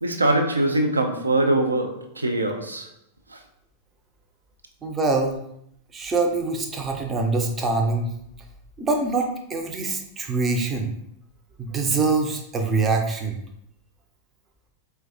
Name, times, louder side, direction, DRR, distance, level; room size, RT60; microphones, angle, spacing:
voice 1, 0.0-2.9, right 1 dB, 80° right, 0.4 m, -22 dB
voice 2, 4.8-5.4 5.9-8.1 8.8-10.9 11.6-13.4, right 3 dB, 20° right, 0.5 m, -24 dB
4.5 x 2.2 x 2.5 m
figure-of-eight pair, 90°, 0 cm